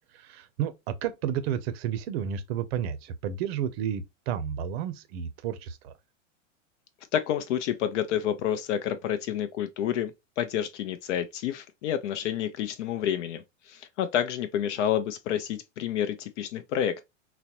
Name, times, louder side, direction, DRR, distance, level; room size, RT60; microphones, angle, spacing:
voice 1, 0.1-5.9, right 9 dB, 55° right, 0.6 m, -31 dB
voice 2, 7.1-17.0, left 10 dB, 65° left, 0.6 m, -29 dB
3.9 x 2.0 x 2.8 m
hypercardioid pair, 135°, 38 cm